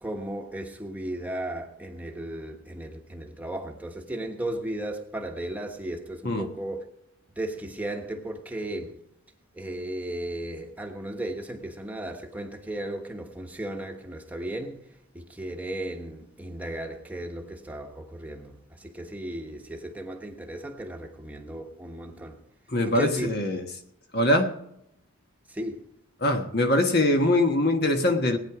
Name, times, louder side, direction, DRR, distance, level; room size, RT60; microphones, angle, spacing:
voice 1, 0.0-6.8 7.3-9.0 9.5-22.4 22.8-23.3 25.5-25.9, right 1 dB, 5° right, 1.2 m, -35 dB
voice 2, 22.7-23.6 24.1-24.5 26.2-28.4, left 1 dB, 45° left, 1.4 m, -23 dB
18.5 x 9.6 x 4.9 m
head